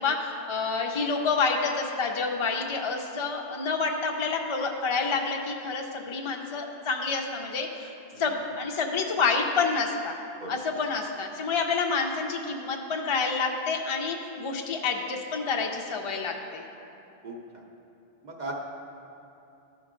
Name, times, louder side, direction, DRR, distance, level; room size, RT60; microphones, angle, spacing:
voice 1, 0.0-7.9 8.2-10.2 10.5-16.6, left 4 dB, 45° left, 2 dB, 0.4 m, -28 dB
voice 2, 8.1-8.2 10.4-10.5 17.2-17.3 18.2-18.5, right 2 dB, 45° right, -1 dB, 0.8 m, -36 dB
12.5 x 4.6 x 3.7 m, 2.8 s
omnidirectional pair, 1.1 m